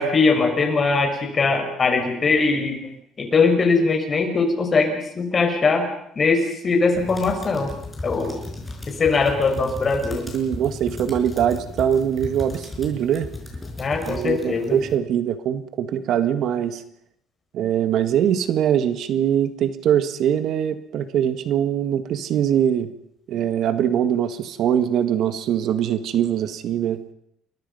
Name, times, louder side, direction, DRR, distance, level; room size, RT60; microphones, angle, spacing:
voice 1, 0.0-2.8 3.2-5.9 6.2-7.7 8.0-8.4 8.9-10.2 13.8-14.8, left 4 dB, 30° left, 4 dB, 5.7 m, -21 dB
sound 1, 6.9-14.9, left 2 dB, 15° left, 6.0 m, -36 dB
voice 2, 10.3-13.3 14.0-16.8 17.5-22.9 23.3-27.0, right 9 dB, 60° right, 10 dB, 1.7 m, -22 dB
29.0 x 22.5 x 5.6 m, 0.74 s
cardioid pair, 125°, 0 cm